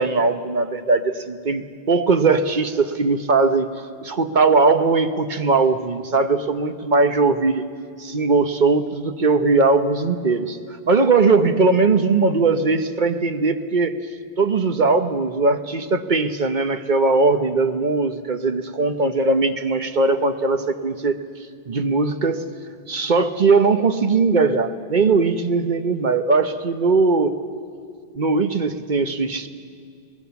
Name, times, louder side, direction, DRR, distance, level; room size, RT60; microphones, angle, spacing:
voice 1, 0.0-3.7 4.0-7.6 8.0-10.6 10.9-13.9 14.4-21.2 21.7-22.4 22.9-27.3 28.2-29.5, right 3 dB, 45° right, 8 dB, 1.0 m, -19 dB
24.0 x 19.5 x 7.0 m, 2.2 s
omnidirectional pair, 1.1 m